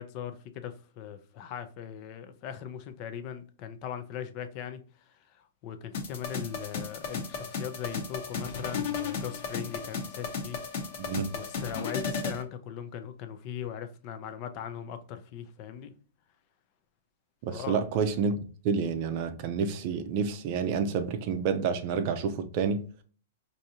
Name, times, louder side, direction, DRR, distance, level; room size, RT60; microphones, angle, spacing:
voice 1, 0.0-4.8 5.1-5.2 5.6-10.6 11.3-15.9 17.5-17.8, left 9 dB, 35° left, 0.4 m, -39 dB
sound 1, 5.9-12.4, left 5 dB, 50° left, 0.9 m, -34 dB
voice 2, 11.0-11.3 17.4-22.8, right 6 dB, 40° right, 0.5 m, -29 dB
4.6 x 2.7 x 2.7 m
hypercardioid pair, 160°, 0 cm